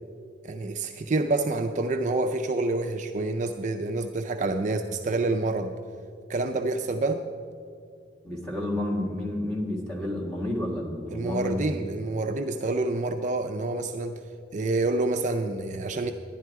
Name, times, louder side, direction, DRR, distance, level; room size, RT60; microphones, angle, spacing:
voice 1, 0.4-5.8 6.3-7.2 11.1-14.2 14.5-16.1, right 2 dB, 40° right, 6 dB, 0.4 m, -27 dB
voice 2, 8.2-11.6, left 1 dB, 5° left, -4 dB, 1.6 m, -30 dB
11.0 x 10.5 x 4.7 m, 2.4 s
head